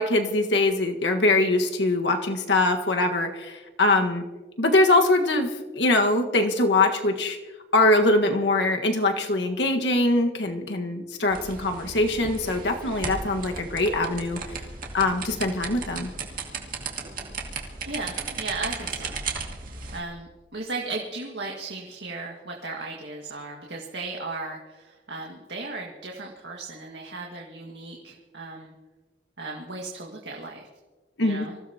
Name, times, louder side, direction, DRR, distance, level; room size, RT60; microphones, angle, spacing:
voice 1, 0.0-4.2 4.6-7.4 7.7-14.4 14.9-16.1 31.2-31.5, left 2 dB, 85° left, 3 dB, 1.6 m, -22 dB
sound 1, 11.3-20.0, right 4 dB, 50° right, 2.2 m, -35 dB
voice 2, 17.9-19.2 19.9-28.7 29.4-30.6 31.2-31.6, right 3 dB, 85° right, -1 dB, 1.9 m, -36 dB
25.5 x 16.0 x 2.9 m, 1.3 s
head